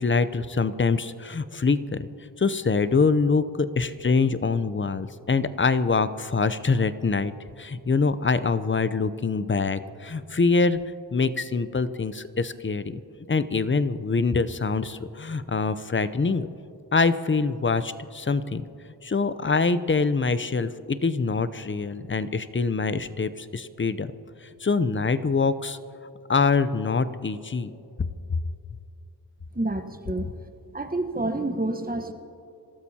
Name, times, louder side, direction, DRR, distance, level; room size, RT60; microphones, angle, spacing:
voice 1, 0.0-2.1 2.4-7.3 7.6-10.8 11.1-13.0 13.3-16.5 16.9-18.7 19.0-24.1 24.4-25.8 26.3-27.7, left 4 dB, 25° left, 13 dB, 0.7 m, -24 dB
voice 2, 29.5-30.3 30.7-32.1, right 2 dB, 20° right, 6 dB, 1.2 m, -28 dB
26.5 x 13.0 x 2.9 m, 2.7 s
cardioid pair, 45°, 43 cm